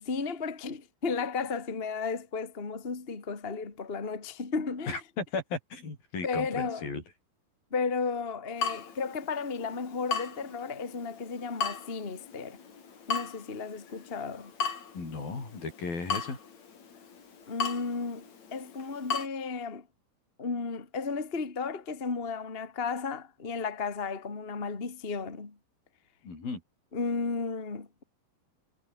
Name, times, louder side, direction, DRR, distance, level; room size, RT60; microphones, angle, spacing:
voice 1, 0.0-5.0 6.2-6.9 7.7-12.6 13.1-14.5 17.5-18.3 18.5-19.9 20.4-25.6 26.9-28.0, left 4 dB, 20° left, 2.0 m, -34 dB
voice 2, 4.9-7.0 14.9-16.4 26.2-26.6, left 4 dB, 80° left, 9.3 m, -35 dB
Water tap faucet / Drip, 8.6-19.3, left 6 dB, 50° left, 4.6 m, -37 dB
omnidirectional pair, 4.1 m